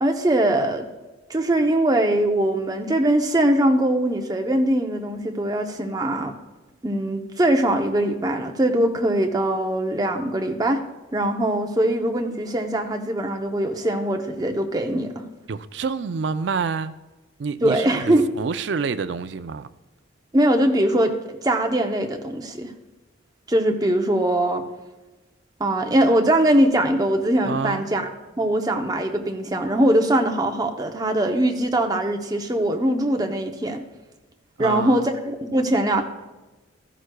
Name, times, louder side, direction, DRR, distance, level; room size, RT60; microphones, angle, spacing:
voice 1, 0.0-0.9 1.3-6.3 6.8-10.8 11.1-15.2 17.6-18.3 20.3-22.7 23.5-24.6 25.6-28.1 28.4-33.8 34.6-36.0, right 1 dB, 20° right, 4 dB, 0.7 m, -21 dB
voice 2, 15.5-16.9 17.4-19.7 27.4-27.8 34.6-35.1, right 5 dB, 60° right, 12 dB, 0.4 m, -28 dB
14.0 x 11.0 x 2.3 m, 1.1 s
head